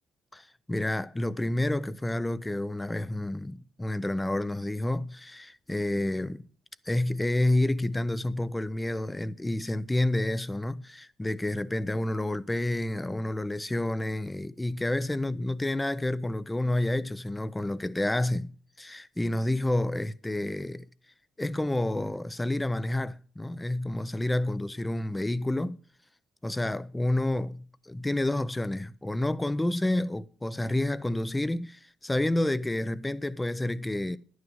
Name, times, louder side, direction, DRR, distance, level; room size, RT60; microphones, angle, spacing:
voice 1, 0.3-6.5 6.9-18.5 18.8-20.9 21.4-25.8 26.4-34.2, left 1 dB, 10° left, 0.6 m, -29 dB
11.0 x 9.6 x 5.3 m
cardioid pair, 90°, 0 cm